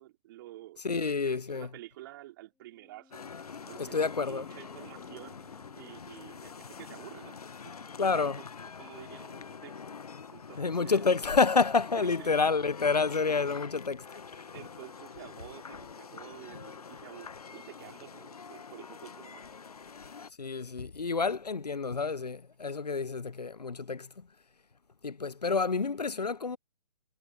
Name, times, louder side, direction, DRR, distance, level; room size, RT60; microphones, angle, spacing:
voice 1, 0.0-3.2 3.7-5.4 5.8-7.4 7.6-8.4 8.8-9.8 10.3-11.0 12.0-12.3 13.1-13.2 14.1-19.5, right 16 dB, 35° right, 4.5 m, -50 dB
voice 2, 0.8-1.7 3.8-4.5 8.0-8.4 10.6-14.1 14.3-14.5 20.4-24.3 25.0-26.6, left 4 dB, 90° left, 0.6 m, -29 dB
Wind instrument woodwind instrument, 2.5-6.9, left 4 dB, 5° left, 5.0 m, -61 dB
sound 1, 3.1-20.3, left 5 dB, 70° left, 1.2 m, -46 dB
figure-of-eight pair, 135°, 20 cm